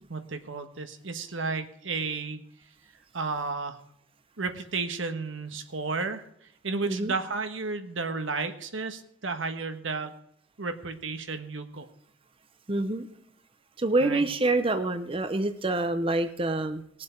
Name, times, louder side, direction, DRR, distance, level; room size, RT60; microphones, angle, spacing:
voice 1, 0.1-2.5 3.1-3.8 4.4-6.2 6.6-10.1 10.6-11.9 14.0-14.2, right 4 dB, 85° right, 7 dB, 1.4 m, -32 dB
voice 2, 12.7-13.1 13.8-16.8, right 2 dB, 30° right, 9 dB, 0.7 m, -26 dB
19.5 x 7.5 x 4.6 m, 0.71 s
head